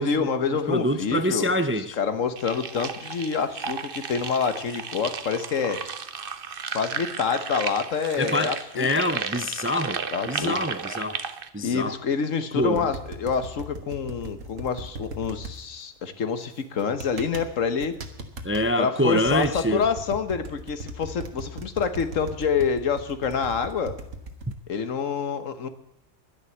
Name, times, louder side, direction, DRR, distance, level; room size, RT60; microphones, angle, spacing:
voice 1, 0.0-1.6 2.0-5.8 6.7-9.2 10.1-10.6 11.6-18.0 18.8-23.9 24.7-25.7, left 6 dB, 80° left, 10 dB, 1.5 m, -27 dB
voice 2, 0.7-2.0 8.2-11.2 11.5-11.9 12.5-12.9 18.4-19.9, left 1 dB, 15° right, 11 dB, 0.4 m, -25 dB
sound 1, 2.4-11.5, right 6 dB, 50° right, 1.0 m, -34 dB
sound 2, 12.6-15.5 16.8-17.5 17.8-18.6 19.1-24.5, right 2 dB, 80° right, 1.8 m, -38 dB
11.5 x 10.5 x 8.0 m, 0.83 s
omnidirectional pair, 1.3 m